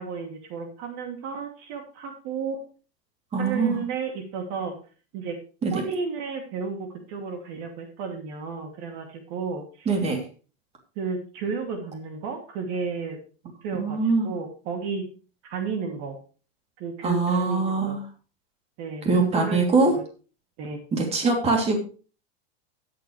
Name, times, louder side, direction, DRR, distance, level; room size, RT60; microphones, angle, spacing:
voice 1, 0.0-2.6 3.4-4.8 5.1-5.4 5.7-9.9 11.0-13.2 13.4-15.1 15.4-16.2 16.8-18.0 18.8-19.6 19.9-20.0 20.6-20.8, right 5 dB, 45° right, 4 dB, 2.6 m, -32 dB
voice 2, 3.3-3.8 5.6-5.8 9.9-10.2 13.7-14.3 17.0-18.0 19.0-19.9 20.9-21.8, right 3 dB, 20° right, 2 dB, 3.0 m, -23 dB
13.5 x 10.5 x 3.2 m, 0.37 s
supercardioid pair, 150°, 32 cm